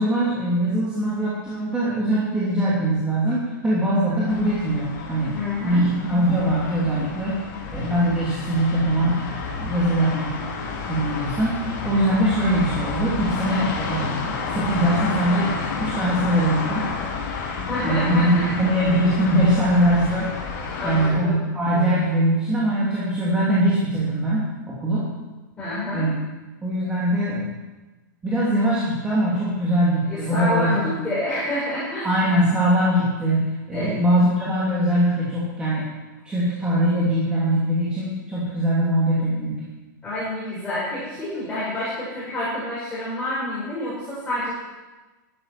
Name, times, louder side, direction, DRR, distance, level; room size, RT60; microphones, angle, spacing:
voice 1, 0.0-5.4 5.6-7.4 7.7-9.2 9.6-10.3 10.9-15.5 15.8-16.8 17.3-25.0 25.9-26.1 26.6-27.5 28.2-30.9 32.0-35.9 36.2-39.6, right 1 dB, 10° right, -8 dB, 3.1 m, -22 dB
sound 1, 4.3-21.1, left 4 dB, 45° left, 5.1 m, -31 dB
voice 2, 5.3-5.8 17.7-18.5 20.7-21.4 25.6-26.1 30.1-32.1 33.7-33.9 40.0-44.5, left 1 dB, 10° left, -11 dB, 5.7 m, -28 dB
14.5 x 13.0 x 6.1 m, 1.2 s
supercardioid pair, 165°, 11 cm